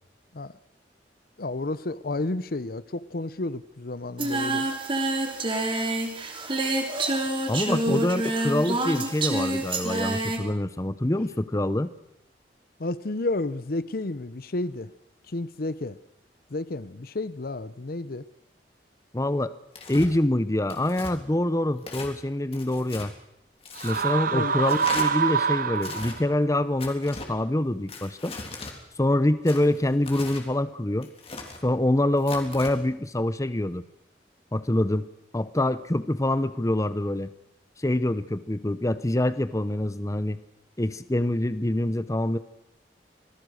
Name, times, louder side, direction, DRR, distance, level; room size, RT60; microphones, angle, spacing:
voice 1, 1.4-4.6 7.7-8.1 12.8-14.9 15.3-16.0 16.5-18.2 24.3-24.5, left 2 dB, 55° left, 16 dB, 0.8 m, -31 dB
Singing, 4.2-10.4, right 2 dB, 30° right, 3.0 m, -27 dB
voice 2, 7.5-11.9 19.1-19.5 19.9-23.1 23.8-28.3 29.0-31.1 31.6-33.8 34.5-35.1 35.3-37.3 37.8-40.4 40.8-42.4, left 1 dB, 20° left, 14 dB, 0.8 m, -25 dB
Tearing, 19.7-20.1 20.7-21.1 21.8-22.1 22.5-23.1 23.6-24.1 24.7-25.1 25.8-26.2 26.8-27.3 27.9-28.7 29.5-30.4 31.0-31.6 32.2-32.7, left 3 dB, 35° left, 3.5 m, -39 dB
sound 1, 23.8-26.4, right 6 dB, 50° right, 1.0 m, -26 dB
26.5 x 19.0 x 6.4 m, 0.81 s
head